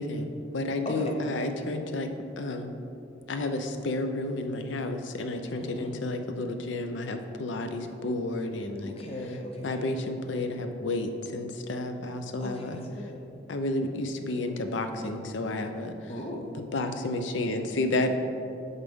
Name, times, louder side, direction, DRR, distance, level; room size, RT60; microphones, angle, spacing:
voice 1, 0.0-2.1 2.4-2.7 3.3-8.9 9.6-12.8 13.5-16.1 16.7-18.2, left 2 dB, 80° left, 6 dB, 0.6 m, -31 dB
voice 2, 0.8-1.2 5.6-5.9 8.8-9.9 12.4-13.3 16.1-16.5, left 1 dB, 30° left, 1 dB, 0.6 m, -38 dB
11.0 x 4.0 x 3.6 m, 2.6 s
head